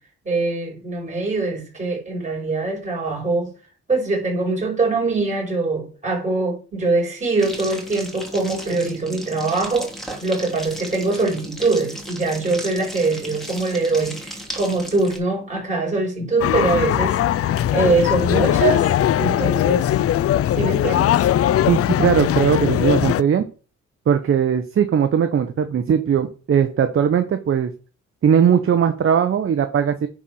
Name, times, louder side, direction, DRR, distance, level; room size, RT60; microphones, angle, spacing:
voice 1, 0.2-3.5 3.9-9.9 10.2-19.9 20.6-21.2, right 3 dB, 25° right, 5.6 m, -23 dB
sound 1, 7.4-15.2, equal, ahead, 3.0 m, -35 dB
sound 2, 16.4-23.2, left 12 dB, 50° left, 0.5 m, -19 dB
voice 2, 21.7-23.4 24.1-27.7 28.2-30.1, right 8 dB, 45° right, 1.0 m, -19 dB
10.0 x 4.4 x 5.5 m
cardioid pair, 90°, 30 cm